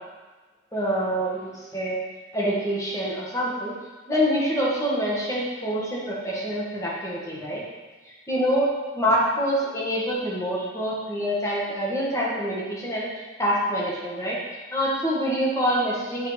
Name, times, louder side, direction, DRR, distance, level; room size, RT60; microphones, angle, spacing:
voice 1, 0.7-2.0 2.3-3.7 4.1-7.6 8.3-8.7 8.9-13.1 13.4-14.4 14.7-16.3, equal, 15° left, -6 dB, 1.8 m, -26 dB
8.0 x 4.5 x 5.1 m, 1.2 s
head